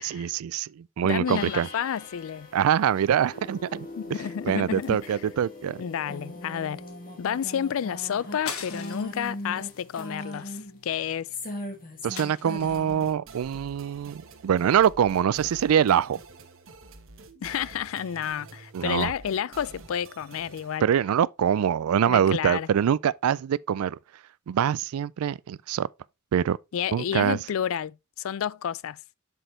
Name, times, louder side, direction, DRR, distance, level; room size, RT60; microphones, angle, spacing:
voice 1, 0.0-1.7 2.5-3.9 4.4-5.8 12.0-16.2 18.7-19.1 20.8-24.0 24.5-25.9 26.3-26.6 26.9-27.4, right 9 dB, 85° right, 0.3 m, -24 dB
voice 2, 1.0-2.5 4.0-5.2 5.8-6.8 7.2-11.3 17.4-20.9 22.1-22.7 26.7-29.0, left 8 dB, 65° left, 0.4 m, -30 dB
sound 1, 1.3-13.1, left 1 dB, 40° left, 2.2 m, -40 dB
sound 2, 8.5-9.2 9.7-9.9 10.2-11.2 12.2-12.9, left 7 dB, 85° left, 1.4 m, -39 dB
sound 3, 12.5-20.8, right 3 dB, 65° right, 1.2 m, -48 dB
7.9 x 6.3 x 3.2 m
head